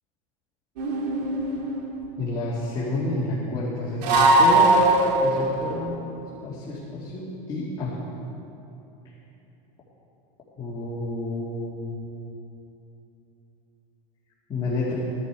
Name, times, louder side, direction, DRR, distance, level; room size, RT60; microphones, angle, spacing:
sound 1, 0.8-1.8 4.0-5.5, right 2 dB, 90° right, 2.1 m, -19 dB
voice 1, 2.2-4.8 5.2-6.0 6.4-8.0 10.6-12.0 14.5-14.9, left 2 dB, 20° left, -8 dB, 2.3 m, -29 dB
16.0 x 11.0 x 4.8 m, 2.9 s
supercardioid pair, 150°, 20 cm